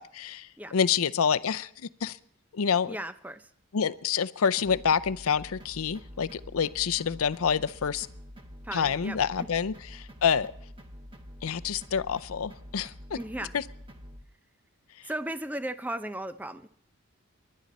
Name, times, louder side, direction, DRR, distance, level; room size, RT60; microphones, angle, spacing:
voice 1, 0.0-0.5 0.7-1.7 2.0-2.2 2.6-2.9 3.7-8.1 8.7-10.5 11.4-13.2 13.5-13.6, left 7 dB, 80° left, 13 dB, 0.6 m, -27 dB
voice 2, 2.9-3.5 8.6-9.5 13.2-13.6 15.0-16.7, right 1 dB, 5° right, 11 dB, 0.5 m, -36 dB
sound 1, 4.6-14.2, equal, 25° right, 1.2 m, -47 dB
29.0 x 11.5 x 4.2 m, 0.65 s
head